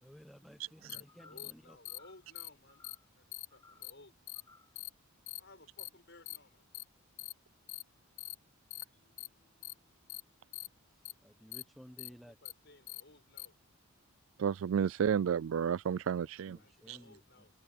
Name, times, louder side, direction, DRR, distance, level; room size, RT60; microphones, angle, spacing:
voice 1, 0.0-1.8 10.9-12.4 15.9-16.0 16.5-17.5, equal, ahead, 0.9 m, -56 dB
sound 1, 0.9-1.0 1.4-1.5 1.9-2.0 2.4-2.5 2.8-3.0 3.3-3.5 3.8-3.9 4.3-4.4 4.8-4.9 5.3-5.4 5.8-5.9 6.3-6.4 6.7-6.8 7.2-7.3 7.7-7.8 8.2-8.4 8.7-8.8 9.2-9.3 9.6-9.7 10.1-10.2 10.5-10.7 11.1-11.2 11.5-11.6 12.0-12.1 12.5-12.6 12.9-13.0 13.4-13.5, left 20 dB, 70° left, 0.4 m, -43 dB
voice 2, 0.9-2.8 3.1-4.1 5.4-6.7 12.3-13.5 16.6-17.5, left 2 dB, 50° left, 7.4 m, -58 dB
sound 2, 1.1-1.5 1.9-2.3 2.7-3.1 3.5-3.9 4.3-4.8, left 4 dB, 20° left, 7.5 m, -62 dB
Mallet percussion, 8.9-12.2, left 2 dB, 35° left, 7.5 m, -82 dB
voice 3, 14.4-16.6 16.9-17.0, right 7 dB, 65° right, 0.3 m, -31 dB
head